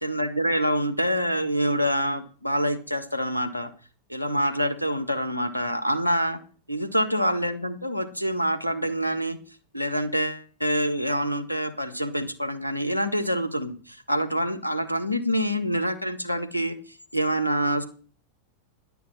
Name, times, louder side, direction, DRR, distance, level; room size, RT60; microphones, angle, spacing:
voice 1, 0.0-3.7 4.1-6.4 6.7-9.4 9.7-16.7 17.1-17.8, equal, 90° left, 7 dB, 1.6 m, -26 dB
11.0 x 6.9 x 8.8 m, 0.40 s
figure-of-eight pair, 90°, 0 cm